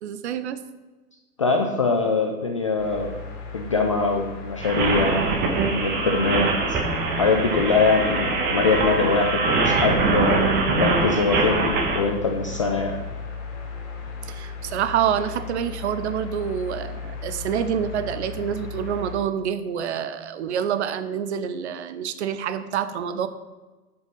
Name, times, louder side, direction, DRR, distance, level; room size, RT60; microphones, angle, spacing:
voice 1, 0.0-0.6 14.2-23.3, right 8 dB, 45° right, 12 dB, 0.7 m, -27 dB
voice 2, 1.4-3.1 3.5-5.3 5.7-6.5 7.1-13.0, left 4 dB, 25° left, 3 dB, 0.3 m, -23 dB
sound 1, 2.8-19.2, left 5 dB, 45° left, 2.5 m, -36 dB
sound 2, 4.6-12.0, right 3 dB, 20° right, 1.3 m, -23 dB
9.6 x 5.6 x 5.3 m, 1.2 s
figure-of-eight pair, 105°, 47 cm